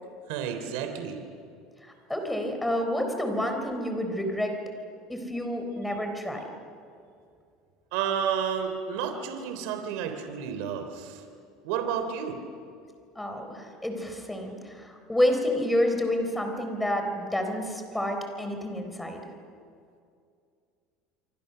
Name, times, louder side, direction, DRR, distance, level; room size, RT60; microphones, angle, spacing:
voice 1, 0.3-1.2 7.9-11.2 11.6-12.4, right 8 dB, 80° right, 6 dB, 3.2 m, -31 dB
voice 2, 1.8-4.5 5.1-6.4 13.2-19.2, left 1 dB, 5° left, 5 dB, 3.9 m, -29 dB
28.0 x 24.5 x 6.8 m, 2.4 s
cardioid pair, 145°, 0 cm